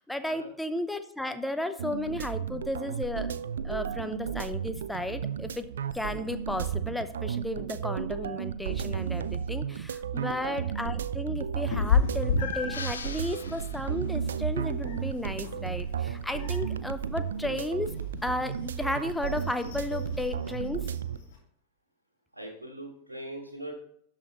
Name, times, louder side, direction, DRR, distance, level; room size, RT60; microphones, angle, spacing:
voice 1, 0.0-3.3 3.6-5.7 5.9-18.0 18.2-20.9, left 1 dB, 5° left, 9 dB, 0.6 m, -34 dB
sound 1, 1.8-21.2, right 8 dB, 65° right, 0.3 m, -34 dB
voice 2, 10.1-10.6 22.3-23.7, right 1 dB, 80° right, 0 dB, 1.5 m, -42 dB
Meow, 11.7-21.4, left 5 dB, 50° left, 2.8 m, -34 dB
sound 2, 12.7-14.3, left 5 dB, 75° left, 0.7 m, -42 dB
12.5 x 5.1 x 3.0 m, 0.67 s
figure-of-eight pair, 90°, 0 cm